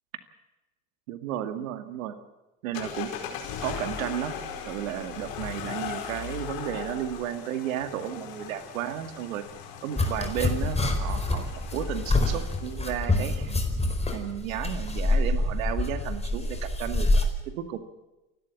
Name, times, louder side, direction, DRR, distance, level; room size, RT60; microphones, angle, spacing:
voice 1, 1.1-2.2 2.6-3.1 3.6-9.4 9.8-13.6 14.1-17.8, right 10 dB, 70° right, 10 dB, 2.2 m, -33 dB
sound 1, 2.7-13.0, left 8 dB, 60° left, 4.9 m, -39 dB
sound 2, 10.0-17.2, left 2 dB, 15° left, 4.6 m, -26 dB
29.0 x 12.5 x 7.3 m, 1.0 s
hypercardioid pair, 70°, 41 cm